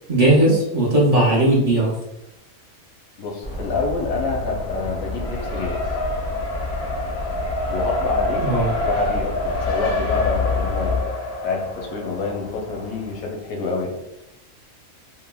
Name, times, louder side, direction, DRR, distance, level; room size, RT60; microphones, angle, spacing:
voice 1, 0.1-2.0 8.4-8.7, right 1 dB, 45° right, -6 dB, 0.5 m, -17 dB
voice 2, 3.2-5.9 7.7-8.5 8.8-11.1 11.4-14.0, left 4 dB, 80° left, 1 dB, 1.1 m, -27 dB
sound 1, 3.4-11.0, left 3 dB, 25° left, 0.5 m, -29 dB
Race car auto racing, 4.2-13.2, left 1 dB, 65° left, 0.7 m, -28 dB
3.4 x 2.1 x 2.2 m, 0.90 s
omnidirectional pair, 1.4 m